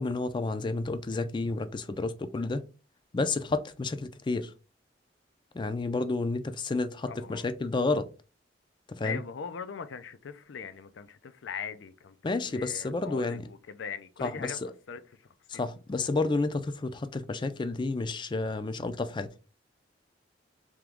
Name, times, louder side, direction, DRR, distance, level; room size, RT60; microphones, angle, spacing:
voice 1, 0.0-2.6 3.1-4.5 5.5-8.0 9.0-9.2 12.2-13.4 14.2-14.7 15.5-19.3, left 3 dB, 25° left, 0.4 m, -30 dB
voice 2, 7.1-7.5 9.0-14.6 14.9-15.0 15.5-15.6, left 6 dB, 85° left, 0.4 m, -40 dB
3.6 x 2.9 x 3.5 m
head